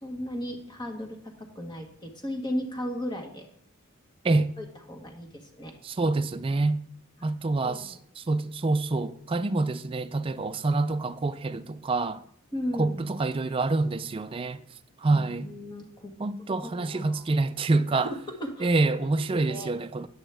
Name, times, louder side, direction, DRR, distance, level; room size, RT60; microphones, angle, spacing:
voice 1, 0.0-3.5 4.6-5.7 7.6-8.0 12.5-13.0 15.1-16.1 16.6-17.2 17.9-18.7 19.3-19.7, equal, 20° left, 1.4 m, -36 dB
voice 2, 5.8-6.8 7.2-12.2 12.8-14.6 15.0-15.5 16.2-18.1 18.6-20.1, right 3 dB, 25° right, 0.4 m, -26 dB
9.8 x 8.1 x 3.4 m
head